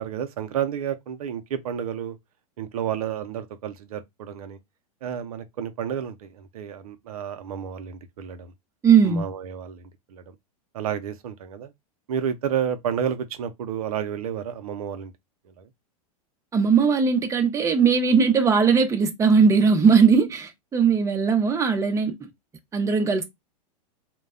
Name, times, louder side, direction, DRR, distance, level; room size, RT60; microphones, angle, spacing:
voice 1, 0.0-2.2 2.6-4.6 5.0-8.5 9.0-10.2 10.7-11.7 12.1-15.1 15.6-15.7, right 8 dB, 75° right, 0.5 m, -31 dB
voice 2, 8.8-9.2 16.5-22.2 22.7-23.2, right 6 dB, 15° right, 0.6 m, -19 dB
2.2 x 2.0 x 3.6 m
hypercardioid pair, 105°, 19 cm